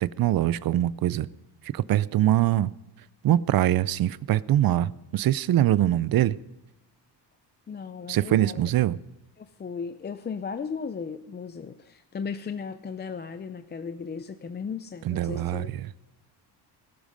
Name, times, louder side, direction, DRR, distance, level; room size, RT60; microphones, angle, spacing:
voice 1, 0.0-1.3 1.6-2.7 3.2-6.4 8.1-9.0 15.0-15.9, right 13 dB, 55° right, 19 dB, 0.5 m, -23 dB
voice 2, 7.7-8.6 9.4-15.7, left 6 dB, 25° left, 10 dB, 0.5 m, -36 dB
18.5 x 11.5 x 5.3 m, 0.99 s
cardioid pair, 110°, 43 cm